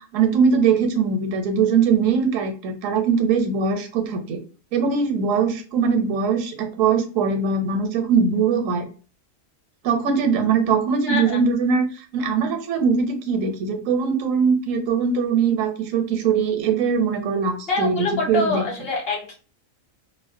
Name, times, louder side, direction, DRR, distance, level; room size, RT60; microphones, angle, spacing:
voice 1, 0.1-4.4 4.7-8.9 9.8-11.9 12.1-18.6, right 5 dB, 80° right, 4 dB, 1.0 m, -21 dB
voice 2, 11.1-11.4 17.7-19.3, left 3 dB, 50° left, -2 dB, 1.0 m, -25 dB
2.4 x 2.1 x 2.5 m, 0.39 s
omnidirectional pair, 1.4 m